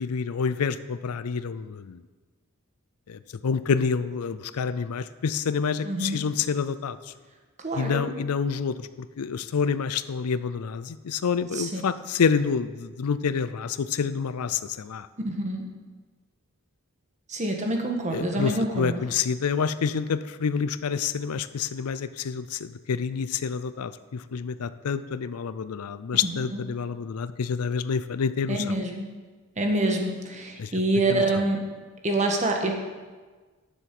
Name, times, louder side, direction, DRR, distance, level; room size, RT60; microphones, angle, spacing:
voice 1, 0.0-2.0 3.1-7.0 7.7-15.1 18.1-28.8 30.6-30.7 31.1-31.4, left 6 dB, 85° left, 14 dB, 0.5 m, -28 dB
voice 2, 5.8-6.2 7.6-8.1 11.5-11.8 15.2-15.6 17.3-19.0 26.5-26.6 28.5-29.1 29.6-31.6 32.0-32.7, right 2 dB, 35° right, 2 dB, 1.4 m, -26 dB
10.0 x 7.2 x 6.0 m, 1.4 s
head